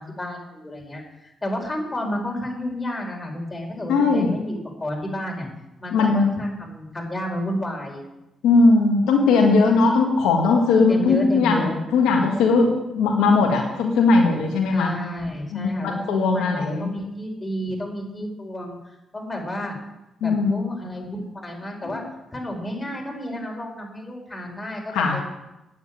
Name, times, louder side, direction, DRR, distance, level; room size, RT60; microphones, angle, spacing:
voice 1, 0.0-5.5 5.8-8.0 10.9-11.8 14.7-18.8 19.1-19.8 20.2-22.0 22.3-24.8 25.1-25.2, equal, 20° left, 0 dB, 4.8 m, -31 dB
voice 2, 3.9-4.3 5.9-6.3 8.4-11.7 11.9-14.9 15.5-16.9 20.2-20.6 24.9-25.2, left 3 dB, 85° left, 1 dB, 1.7 m, -19 dB
9.4 x 8.3 x 8.9 m, 0.95 s
supercardioid pair, 60°, 0 cm